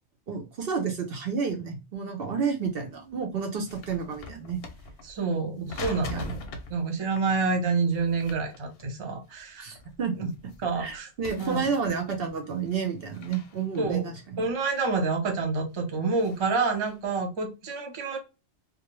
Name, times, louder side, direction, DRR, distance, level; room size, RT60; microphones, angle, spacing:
voice 1, 0.3-4.6 5.6-5.7 6.1-6.3 9.6-10.1 10.8-14.5, right 6 dB, 60° right, 4 dB, 0.8 m, -30 dB
sound 1, 2.7-2.8 3.1-5.3 5.6-6.8 7.1-7.3 7.9-9.4 9.7-11.0 11.2-12.1 12.5-15.1 15.6-17.0, left 3 dB, 60° left, 0.7 m, -43 dB
voice 2, 5.0-6.4 6.7-9.7 10.2-10.3 10.6-11.1 11.4-11.6 13.8-14.1 14.4-18.2, right 4 dB, 35° right, 3 dB, 0.5 m, -28 dB
2.4 x 2.1 x 2.9 m, 0.28 s
omnidirectional pair, 1.2 m